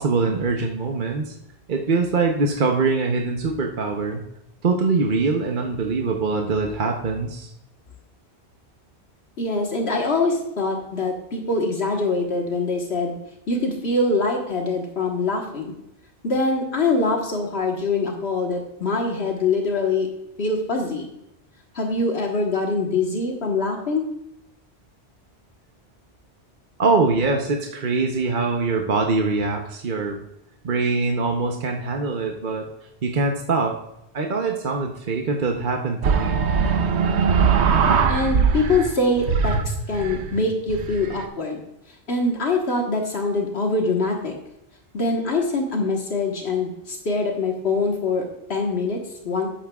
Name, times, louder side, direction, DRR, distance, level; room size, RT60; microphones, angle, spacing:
voice 1, 0.0-1.3 1.7-4.2 4.6-7.5 26.8-30.2 30.6-32.7 33.0-33.8 34.1-36.5, right 4 dB, 50° right, 2 dB, 1.0 m, -23 dB
voice 2, 9.4-13.2 13.5-15.7 16.2-20.1 20.4-21.1 21.7-24.1 38.1-41.6 42.1-44.4 44.9-49.5, left 3 dB, 75° left, 1 dB, 1.6 m, -24 dB
sound 1, 36.0-38.9 39.2-41.2, right 6 dB, 90° right, 1.1 m, -21 dB
12.0 x 8.9 x 2.3 m, 0.84 s
omnidirectional pair, 1.1 m